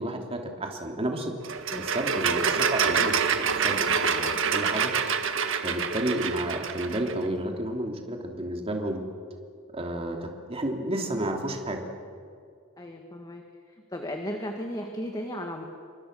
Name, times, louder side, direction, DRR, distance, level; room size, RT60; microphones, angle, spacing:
voice 1, 0.0-1.3 1.7-4.9 5.6-9.0 9.7-11.8, right 1 dB, 25° right, 2 dB, 3.2 m, -31 dB
sound 1, 1.4-7.1, right 6 dB, 60° right, 1.7 m, -26 dB
voice 2, 12.8-13.4 13.9-15.7, equal, 20° left, 3 dB, 1.8 m, -35 dB
29.0 x 25.0 x 6.8 m, 2.3 s
head